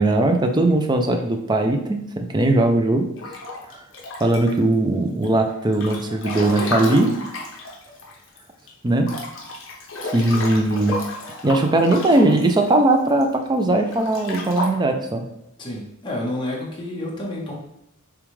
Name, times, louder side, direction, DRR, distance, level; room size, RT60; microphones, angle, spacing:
voice 1, 0.0-3.1 4.2-7.1 8.8-9.1 10.1-11.0 11.4-15.2, right 2 dB, 20° right, 4 dB, 0.4 m, -19 dB
Breathing / Bathtub (filling or washing) / Splash splatter, 3.2-4.7 5.2-8.4 8.7-8.8 9.0-13.2 13.8-14.7, left 2 dB, 60° left, 1.0 m, -32 dB
voice 2, 15.6-17.5, left 1 dB, 20° left, -4 dB, 1.1 m, -29 dB
6.9 x 2.4 x 3.2 m, 0.82 s
head